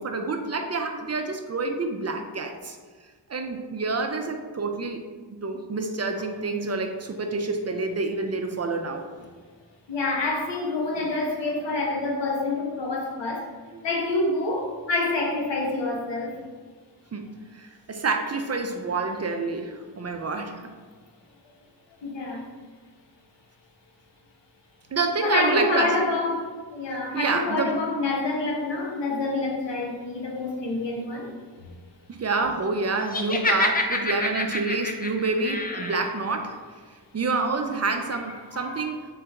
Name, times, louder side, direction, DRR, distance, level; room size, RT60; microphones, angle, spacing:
voice 1, 0.0-2.8 3.3-5.0 5.4-9.0 13.7-13.8 17.1-17.3 17.5-20.7 24.9-26.0 27.1-27.8 32.1-36.6 37.1-39.1, right 3 dB, 40° right, 5 dB, 0.4 m, -28 dB
voice 2, 9.9-13.5 13.8-16.4 22.0-22.5 25.2-31.3 38.5-38.8, left 2 dB, 75° left, -2 dB, 1.1 m, -27 dB
Laughter, 33.1-36.1, left 2 dB, 20° left, 0.4 m, -27 dB
3.9 x 3.4 x 3.4 m, 1.5 s
cardioid pair, 60°, 43 cm